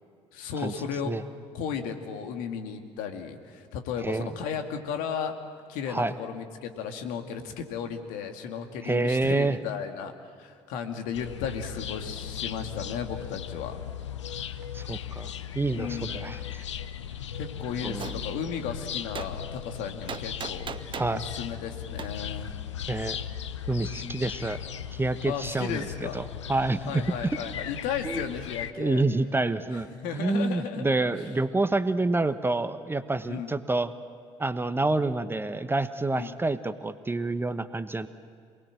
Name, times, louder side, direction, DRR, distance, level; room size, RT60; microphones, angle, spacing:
voice 1, 0.3-1.1 1.5-5.3 5.7-10.1 10.4-13.8 15.8-16.3 17.4-22.6 24.0-24.2 25.3-26.2 26.9-29.0 29.9-31.3 33.3-33.6 36.1-36.4, left 7 dB, 65° left, 5 dB, 2.3 m, -35 dB
voice 2, 8.8-9.6 14.7-16.6 17.8-18.2 20.9-21.2 22.9-23.2 23.7-24.6 24.9-26.2 26.5-27.0 28.0-28.2 28.8-33.9 34.4-38.1, right 2 dB, 15° right, 11 dB, 1.2 m, -28 dB
sound 1, 11.1-28.7, left 9 dB, 85° left, 0.8 m, -37 dB
Gunshot gunfire, 18.0-18.2 19.1-19.3 20.1-21.2 22.0-22.1, right 6 dB, 35° right, 1.4 m, -36 dB
27.5 x 20.0 x 7.6 m, 2.2 s
figure-of-eight pair, 55°, 15 cm